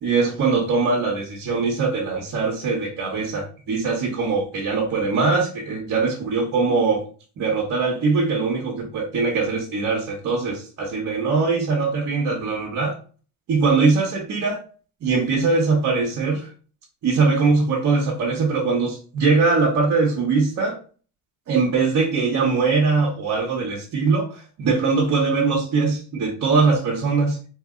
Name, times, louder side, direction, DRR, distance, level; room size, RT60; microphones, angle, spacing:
voice 1, 0.0-7.0 7.4-13.0 13.5-14.6 15.0-16.5 17.0-20.8 21.5-27.4, right 4 dB, 45° right, -1 dB, 0.8 m, -21 dB
2.8 x 2.0 x 3.6 m, 0.40 s
cardioid pair, 105°, 38 cm